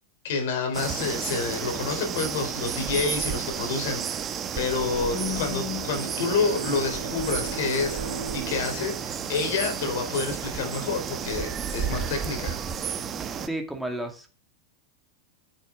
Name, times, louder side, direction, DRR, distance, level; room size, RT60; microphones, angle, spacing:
voice 1, 0.2-4.3 4.5-8.0 8.3-12.6, left 4 dB, 60° left, 5 dB, 3.8 m, -28 dB
sound 1, 0.7-13.5, right 7 dB, 30° right, 1.2 m, -32 dB
Bowed string instrument, 5.1-10.1, equal, 80° right, 3.3 m, -36 dB
voice 2, 13.4-14.4, right 1 dB, ahead, 4 dB, 2.5 m, -32 dB
9.0 x 8.1 x 5.1 m, 0.35 s
figure-of-eight pair, 90°, 0 cm